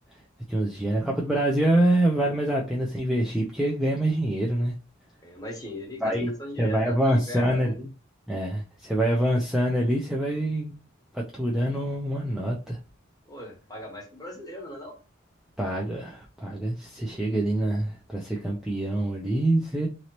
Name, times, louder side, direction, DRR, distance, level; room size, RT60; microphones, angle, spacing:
voice 1, 0.5-4.7 6.0-6.3 6.6-7.9 8.3-10.8 11.1-12.8 15.6-19.9, right 1 dB, 5° right, 0.4 m, -25 dB
voice 2, 5.2-7.7 13.3-15.0, equal, 20° left, 1.1 m, -39 dB
2.9 x 2.8 x 2.9 m
head